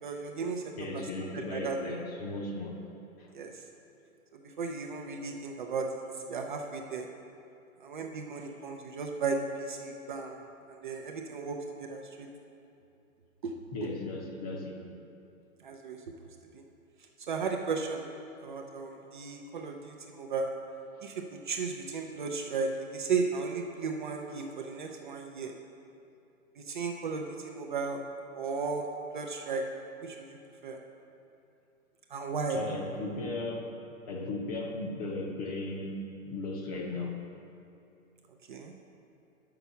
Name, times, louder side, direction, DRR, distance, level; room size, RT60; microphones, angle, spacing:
voice 1, 0.0-1.0 1.3-1.8 3.3-3.6 4.3-7.1 7.8-10.4 10.7-12.3 13.4-13.6 13.8-13.9 15.6-16.3 16.5-16.6 17.3-18.1 18.4-20.5 21.0-25.5 26.6-28.0 28.3-28.9 29.1-29.6 30.0-30.8 32.1-32.6 38.5-38.7, right 4 dB, 35° right, 2 dB, 0.5 m, -35 dB
voice 2, 0.8-2.8 3.2-3.3 13.7-14.8 32.5-33.8 34.1-36.0 36.2-37.2, left 2 dB, 30° left, 1 dB, 0.8 m, -36 dB
5.9 x 5.8 x 6.9 m, 2.7 s
hypercardioid pair, 140°, 42 cm